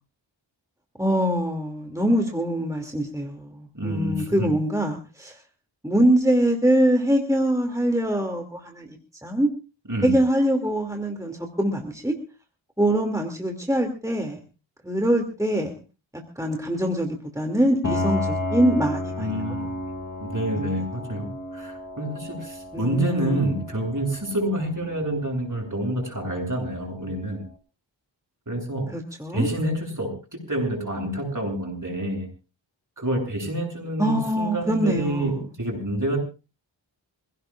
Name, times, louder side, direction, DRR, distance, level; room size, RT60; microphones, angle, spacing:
voice 1, 1.0-5.4 5.8-9.5 10.0-12.2 12.8-14.4 14.8-15.7 16.4-19.3 20.6-20.8 22.7-23.6 28.9-29.5 34.0-35.4, right 1 dB, 5° right, 3 dB, 2.6 m, -24 dB
voice 2, 3.7-4.5 9.9-10.2 19.2-19.7 20.2-27.4 28.5-28.8 29.3-30.1 30.5-32.3 33.0-36.2, right 1 dB, 40° right, 1 dB, 7.9 m, -28 dB
Piano, 17.8-27.4, left 1 dB, 40° left, 2.4 m, -33 dB
27.0 x 17.0 x 2.5 m, 0.33 s
wide cardioid pair, 60°, 47 cm